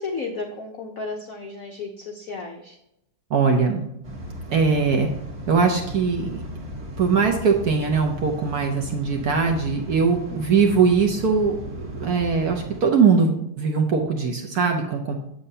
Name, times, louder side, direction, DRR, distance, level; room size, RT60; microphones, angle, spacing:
voice 1, 0.0-2.8 10.3-10.7, left 3 dB, 70° left, 2 dB, 0.8 m, -33 dB
voice 2, 3.3-3.9 4.5-5.1 5.5-6.4 7.0-11.5 12.0-15.2, right 5 dB, 60° right, 2 dB, 1.0 m, -21 dB
sound 1, 4.0-12.8, right 1 dB, 35° right, 1.5 m, -36 dB
7.9 x 7.7 x 2.7 m, 0.83 s
omnidirectional pair, 2.4 m